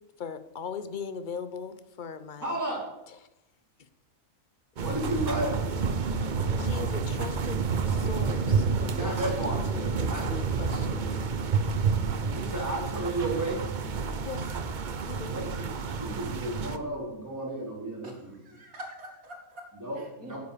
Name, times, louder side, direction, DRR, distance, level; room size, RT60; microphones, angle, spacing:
voice 1, 0.2-2.6 3.1-3.2 3.8-3.9 6.6-11.1 14.2-14.6 15.0-15.3, left 6 dB, 45° left, 12 dB, 0.7 m, -40 dB
voice 2, 2.4-2.8 4.8-5.6 8.6-9.7 10.1-10.3 12.2-13.6 15.3-15.7 16.0-18.3 19.7-20.4, right 1 dB, 10° right, -4 dB, 3.9 m, -33 dB
sound 1, 4.8-16.8, right 5 dB, 45° right, 0.7 m, -29 dB
voice 3, 18.0-19.7 20.0-20.4, right 1 dB, 70° right, 2 dB, 2.6 m, -45 dB
9.5 x 8.2 x 6.7 m, 0.91 s
omnidirectional pair, 1.5 m